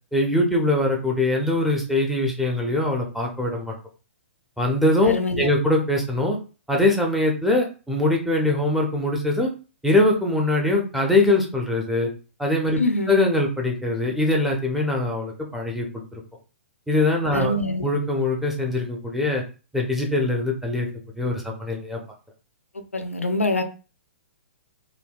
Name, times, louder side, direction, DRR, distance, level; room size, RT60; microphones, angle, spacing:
voice 1, 0.1-3.7 4.6-6.4 6.7-9.5 9.8-12.1 12.4-12.8 13.1-16.2 16.9-17.5 17.8-19.4 19.7-20.9 21.2-22.0, left 2 dB, ahead, 0 dB, 0.6 m, -22 dB
voice 2, 5.0-5.5 12.8-13.1 17.3-17.9 22.7-23.6, left 2 dB, 85° left, 7 dB, 0.4 m, -25 dB
3.3 x 2.3 x 2.3 m, 0.34 s
figure-of-eight pair, 115°, 7 cm